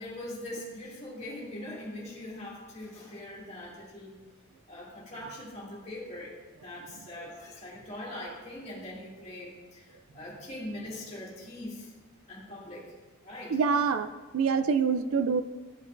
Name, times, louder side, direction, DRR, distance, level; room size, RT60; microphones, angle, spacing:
voice 1, 0.0-4.2 4.7-6.4 6.6-11.9 12.3-12.9 13.2-13.6, left 1 dB, 30° left, -6 dB, 2.3 m, -42 dB
voice 2, 13.5-15.4, right 5 dB, 70° right, 11 dB, 0.4 m, -26 dB
13.0 x 5.2 x 2.6 m, 1.3 s
head